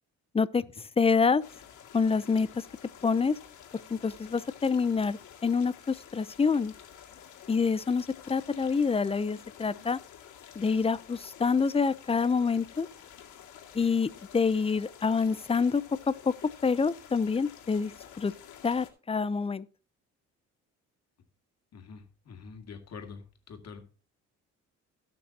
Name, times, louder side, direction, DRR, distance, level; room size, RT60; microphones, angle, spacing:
voice 1, 1.0-1.4 1.9-2.6 3.0-3.4 3.9-6.7 7.5-10.0 10.6-12.9 13.7-15.8 16.1-16.3 16.6-17.9 18.2-18.3 18.6-19.7, left 5 dB, 20° left, 0.6 m, -27 dB
sound 1, 1.4-18.9, left 9 dB, 75° left, 2.3 m, -50 dB
voice 2, 21.7-23.8, left 5 dB, 55° left, 2.3 m, -46 dB
17.5 x 6.1 x 2.8 m
cardioid pair, 90°, 30 cm